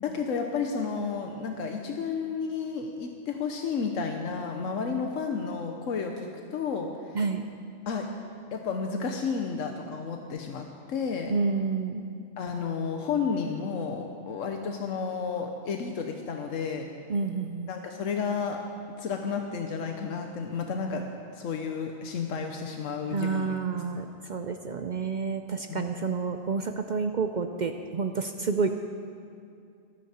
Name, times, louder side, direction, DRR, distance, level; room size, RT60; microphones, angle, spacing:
voice 1, 0.0-7.2 7.9-8.1 8.5-11.4 12.4-16.9 17.7-18.6 19.0-21.0 21.3-23.5 25.7-25.9, left 5 dB, 85° left, 3 dB, 1.2 m, -32 dB
voice 2, 7.1-7.5 11.3-12.1 17.1-17.7 23.1-28.7, right 4 dB, 55° right, 7 dB, 0.5 m, -29 dB
24.5 x 9.5 x 4.3 m, 2.4 s
omnidirectional pair, 1.3 m